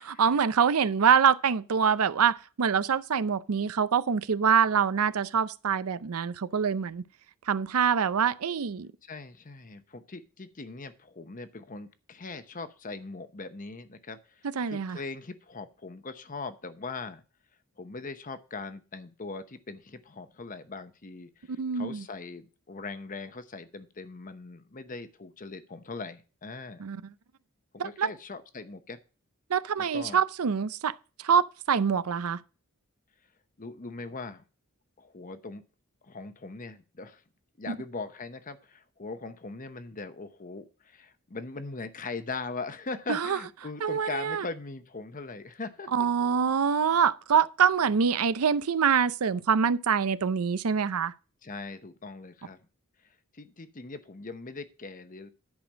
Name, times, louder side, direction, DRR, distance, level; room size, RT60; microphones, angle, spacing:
voice 1, 0.2-7.0 7.5-8.9 14.6-15.0 21.5-22.0 26.8-27.1 27.8-28.1 29.5-32.4 37.7-37.8 43.1-43.4 43.8-44.5 45.9-51.1, right 7 dB, 85° right, 0.5 m, -25 dB
voice 2, 9.0-17.2 17.8-26.8 27.8-29.0 29.8-30.2 33.6-34.4 35.0-35.6 36.0-37.2 37.6-45.9 46.2-46.4 51.4-52.6 53.3-55.3, left 3 dB, 40° left, 0.8 m, -40 dB
10.5 x 5.1 x 6.2 m
head